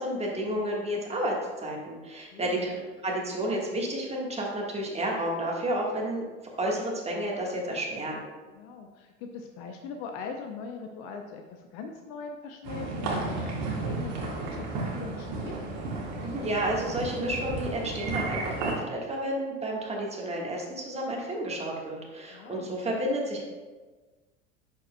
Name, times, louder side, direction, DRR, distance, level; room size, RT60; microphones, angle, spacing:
voice 1, 0.0-6.2 6.6-8.2 16.2-23.4, right 1 dB, 15° right, -1 dB, 1.5 m, -31 dB
voice 2, 2.3-2.7 8.5-15.5 22.3-22.7, left 5 dB, 45° left, 4 dB, 0.6 m, -41 dB
sound 1, 12.6-18.7, right 3 dB, 45° right, 1.8 m, -33 dB
11.0 x 4.5 x 2.2 m, 1.3 s
figure-of-eight pair, 80°, 40 cm